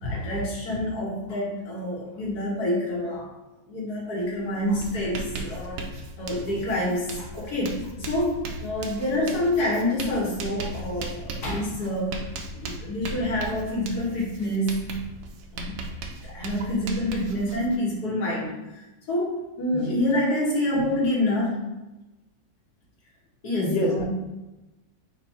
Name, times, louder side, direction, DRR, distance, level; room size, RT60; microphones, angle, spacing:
voice 1, 0.0-3.3 3.7-5.9 6.2-12.2 12.5-14.8 15.5-15.8 16.2-21.7 23.4-24.1, left 1 dB, 60° left, -4 dB, 1.7 m, -27 dB
Writing, 4.2-4.4 4.6-17.8, right 2 dB, 80° right, 1.2 m, -37 dB
voice 2, 23.6-24.1, left 1 dB, 80° left, 0 dB, 1.5 m, -26 dB
4.5 x 2.6 x 4.2 m, 1.0 s
omnidirectional pair, 2.0 m